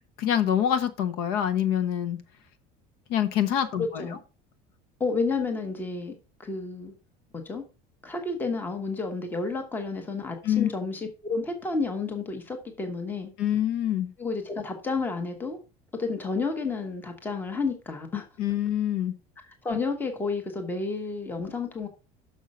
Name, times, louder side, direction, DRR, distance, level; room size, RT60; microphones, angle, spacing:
voice 1, 0.2-2.2 3.1-4.2 10.4-10.7 13.4-14.1 18.4-19.1, left 10 dB, 60° left, 1.0 m, -25 dB
voice 2, 3.8-4.2 5.0-6.1 6.4-6.9 7.3-7.6 8.0-13.3 14.2-15.6 15.9-18.3 19.6-21.9, left 4 dB, 10° left, 1.0 m, -30 dB
6.4 x 5.4 x 5.3 m
cardioid pair, 180°, 18 cm